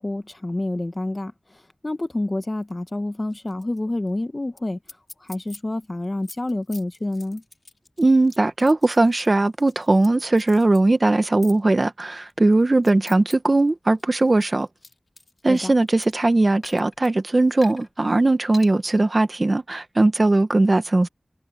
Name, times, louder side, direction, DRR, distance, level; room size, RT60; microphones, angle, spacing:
voice 1, 0.0-1.3 1.8-4.8 5.3-7.4 15.5-15.7, left 2 dB, 40° left, 1.6 m, -28 dB
sound 1, 3.3-3.8 4.1-4.2 4.6-4.7 4.9-5.6 6.0-10.1 10.4-10.8 11.4-11.6 12.3-13.3 13.7-16.2 16.6-17.1 17.6-17.9 18.5-18.7, left 3 dB, 65° left, 5.5 m, -44 dB
voice 2, 8.0-14.7 15.4-21.1, right 2 dB, 50° right, 1.5 m, -19 dB
cardioid pair, 40°, 0 cm